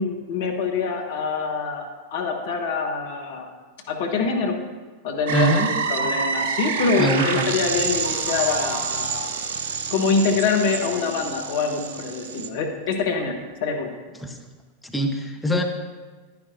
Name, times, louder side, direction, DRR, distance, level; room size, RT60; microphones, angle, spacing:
voice 1, 0.0-3.5 3.9-4.6 5.0-9.3 9.9-13.9, left 4 dB, 55° left, 3 dB, 1.2 m, -25 dB
voice 2, 5.3-5.7 7.0-7.5 14.2-14.4 14.8-15.6, right 1 dB, 5° left, 2 dB, 0.9 m, -23 dB
sound 1, 5.3-12.5, right 5 dB, 60° right, 0.6 m, -28 dB
sound 2, 7.8-9.1 10.5-13.4, right 2 dB, 35° right, 1.5 m, -40 dB
10.5 x 10.5 x 2.6 m, 1.3 s
figure-of-eight pair, 90°, 0 cm